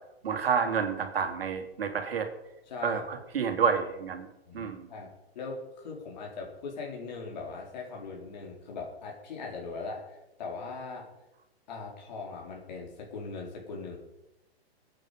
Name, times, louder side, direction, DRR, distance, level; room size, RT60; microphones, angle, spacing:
voice 1, 0.2-2.3 2.8-4.3 4.5-4.8, right 6 dB, 65° right, 5 dB, 3.0 m, -29 dB
voice 2, 2.7-3.0 4.5-5.1 5.3-11.1 11.7-14.0, left 4 dB, 45° left, 0 dB, 4.4 m, -40 dB
21.5 x 9.0 x 5.2 m, 0.92 s
hypercardioid pair, 175°, 31 cm